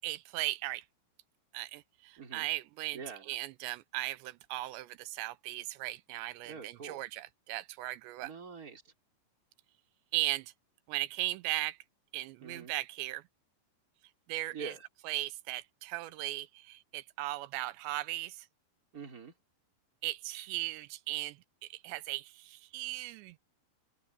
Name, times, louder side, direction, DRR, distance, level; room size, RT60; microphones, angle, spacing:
voice 1, 0.0-0.8 1.5-3.0 3.3-8.3 10.1-10.5 10.9-11.8 12.1-13.2 14.3-14.7 15.0-18.5 20.0-23.4, right 17 dB, 85° right, 3.0 m, -37 dB
voice 2, 2.2-2.5 2.9-3.3 6.5-7.0 8.2-8.9 12.4-12.7 14.5-14.8 18.9-19.3, right 5 dB, 20° right, 3.6 m, -45 dB
omnidirectional pair, 5.0 m